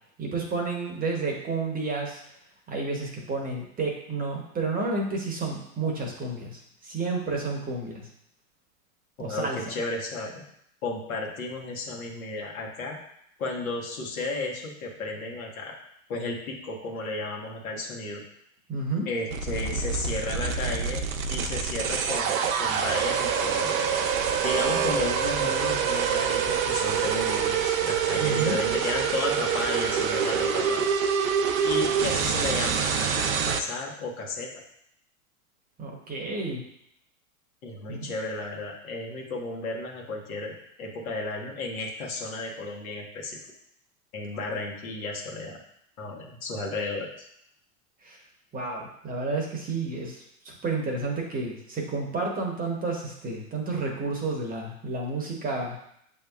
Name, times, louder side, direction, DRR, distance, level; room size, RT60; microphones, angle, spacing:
voice 1, 0.2-2.2 2.7-8.0 9.2-9.6 18.7-19.1 28.1-28.6 35.8-36.6 37.9-38.1 48.0-48.2 48.5-55.9, right 3 dB, 20° right, 0 dB, 0.9 m, -31 dB
voice 2, 9.2-10.4 10.8-13.0 13.4-15.7 16.1-18.2 19.1-23.8 24.4-30.9 31.6-34.5 37.6-43.4 44.1-45.6 46.0-47.1, left 2 dB, 75° left, -1 dB, 1.3 m, -33 dB
sound 1, 19.3-33.6, right 7 dB, 70° right, 0.6 m, -26 dB
sound 2, 22.5-28.8, equal, 30° left, 0.9 m, -46 dB
7.0 x 2.8 x 2.3 m, 0.73 s
hypercardioid pair, 105°, 42 cm